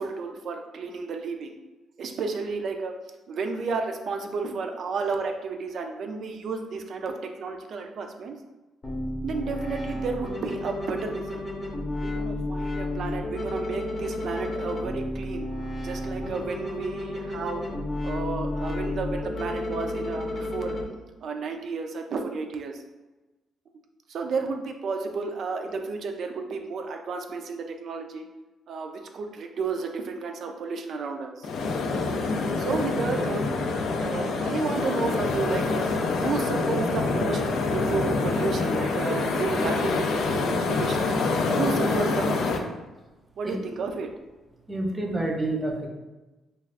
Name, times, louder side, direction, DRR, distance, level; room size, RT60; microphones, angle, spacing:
voice 1, 0.0-1.6 2.0-2.9 3.3-8.3 9.2-11.4 12.0-15.5 15.8-17.6 18.0-20.8 21.2-22.8 24.1-28.2 28.7-31.5 32.5-33.4 34.0-35.8 36.2-37.4 37.7-41.1 41.6-42.8 43.4-44.1, right 4 dB, 60° right, 4 dB, 0.3 m, -32 dB
sound 1, 8.8-20.8, left 1 dB, 30° left, 0.7 m, -32 dB
sound 2, 31.4-42.6, left 3 dB, 70° left, 0.3 m, -26 dB
voice 2, 44.7-45.9, right 2 dB, 20° right, 0 dB, 0.6 m, -28 dB
2.3 x 2.3 x 3.3 m, 1.1 s
cardioid pair, 90°, 0 cm